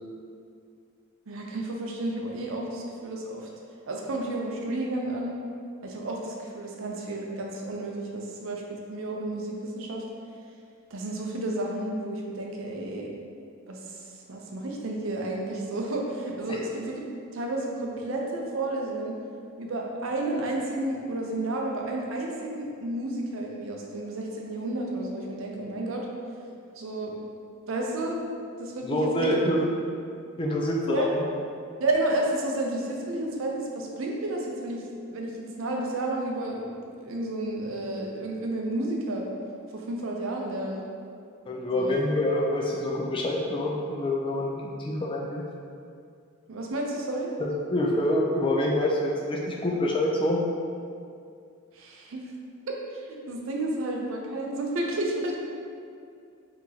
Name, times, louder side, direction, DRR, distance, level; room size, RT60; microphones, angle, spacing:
voice 1, 1.3-3.5 3.9-5.4 5.8-10.0 10.9-13.1 13.7-14.0 14.3-17.0 17.3-19.1 19.6-26.1 26.8-27.2 27.7-28.3 28.6-29.3 30.9-31.1 31.8-34.8 35.1-35.3 35.6-39.3 39.7-40.9 41.7-42.0 46.5-47.3 51.7-52.2 52.9-55.4, right 2 dB, 65° right, 0 dB, 0.5 m, -31 dB
voice 2, 28.8-29.6 30.4-31.2 41.5-45.4 47.4-50.4, left 1 dB, 25° left, -2 dB, 0.3 m, -26 dB
3.8 x 2.9 x 2.7 m, 2.4 s
head